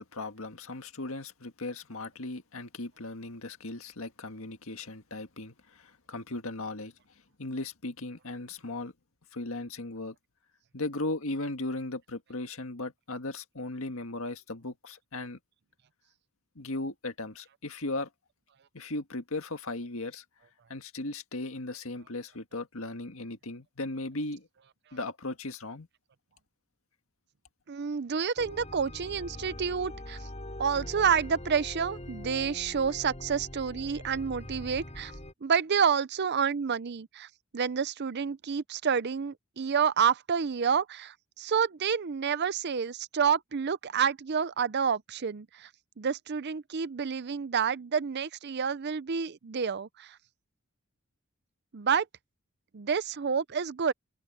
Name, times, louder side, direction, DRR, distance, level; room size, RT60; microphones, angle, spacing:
voice 1, 0.0-6.9 7.4-8.9 9.3-10.2 10.7-15.4 16.6-18.1 18.7-20.2 20.7-24.5 24.9-25.9, left 2 dB, 70° left, 1.8 m, -37 dB
voice 2, 27.7-30.2 30.6-35.1 35.4-37.3 37.5-45.7 46.0-50.2 51.7-52.1 52.7-53.9, right 6 dB, 50° right, 0.5 m, -29 dB
sound 1, 28.4-35.3, left 1 dB, 30° left, 7.9 m, -43 dB
open air
head